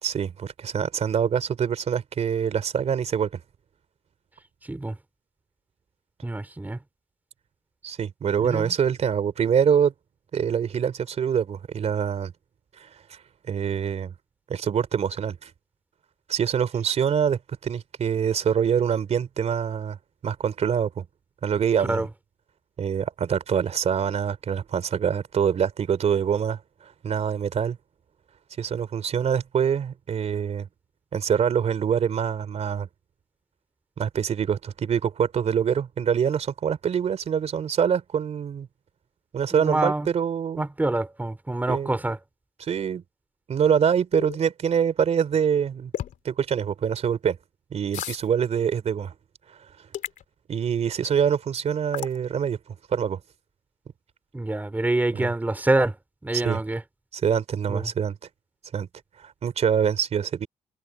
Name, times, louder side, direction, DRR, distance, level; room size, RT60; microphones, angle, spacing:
voice 1, 0.0-3.4 7.8-9.9 10.3-12.3 12.8-13.2 13.5-14.1 14.5-15.5 16.3-20.0 20.2-21.1 21.4-22.1 22.8-26.6 27.0-27.8 28.6-30.7 31.1-32.9 34.0-38.7 39.3-40.6 41.7-41.9 42.6-43.0 43.5-45.9 46.2-47.4 47.7-49.1 50.5-52.6 52.9-53.2 55.1-55.3 56.4-56.6 57.1-58.1 58.7-58.9 59.2-60.5, right 7 dB, 55° right, 3.5 m, -25 dB
voice 2, 4.7-5.0 6.2-6.8 8.4-8.7 21.9-22.1 39.5-40.1 40.6-42.2 54.3-56.0 56.2-56.8 57.7-57.9, right 2 dB, 15° right, 3.5 m, -26 dB
sound 1, 44.1-44.4 45.9-46.2 47.9-48.2 49.9-50.2 51.9-52.2, left 11 dB, 80° left, 3.3 m, -32 dB
cardioid pair, 115°, 13 cm